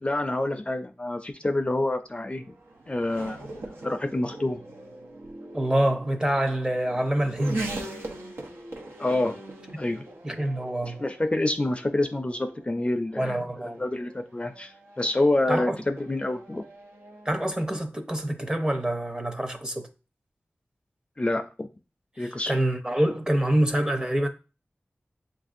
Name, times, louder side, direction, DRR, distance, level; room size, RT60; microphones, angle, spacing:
voice 1, 0.0-2.6 2.9-3.5 3.8-4.6 9.0-9.4 9.8-10.0 10.8-13.5 13.8-14.7 15.0-16.6 21.2-21.7 22.2-22.5, left 2 dB, 25° left, 0.4 m, -27 dB
Race car auto racing / Accelerating revving vroom, 1.1-17.4, right 2 dB, 90° right, 0.8 m, -41 dB
voice 2, 5.5-7.7 10.2-11.0 13.2-13.8 15.5-15.8 17.2-19.9 22.2-24.3, right 1 dB, 20° right, 0.7 m, -26 dB
7.3 x 2.6 x 2.5 m
wide cardioid pair, 80°, 4 cm